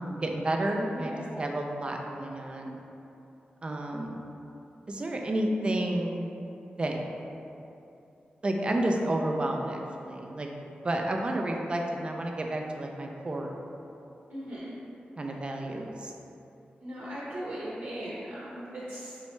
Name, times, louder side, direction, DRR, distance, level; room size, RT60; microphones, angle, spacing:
voice 1, 0.0-2.8 3.6-4.2 4.9-6.3 6.8-7.1 8.4-10.5 10.8-13.5 15.2-16.1, right 1 dB, 30° right, 1 dB, 0.4 m, -31 dB
voice 2, 0.9-1.2 14.3-14.8 16.8-19.2, equal, 70° right, -8 dB, 0.9 m, -38 dB
4.5 x 3.1 x 3.1 m, 2.8 s
wide cardioid pair, 125°, 3 cm